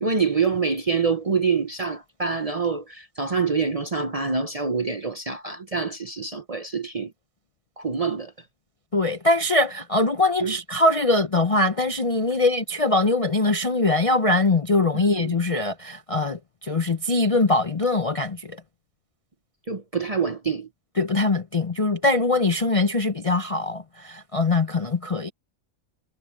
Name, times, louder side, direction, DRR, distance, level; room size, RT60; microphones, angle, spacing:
voice 1, 0.0-7.1 7.8-8.3 10.4-10.6 14.9-15.3 19.7-20.7, right 5 dB, 35° right, 0.7 m, -26 dB
voice 2, 8.9-18.5 21.0-25.3, left 2 dB, 35° left, 0.5 m, -22 dB
omnidirectional pair, 1.5 m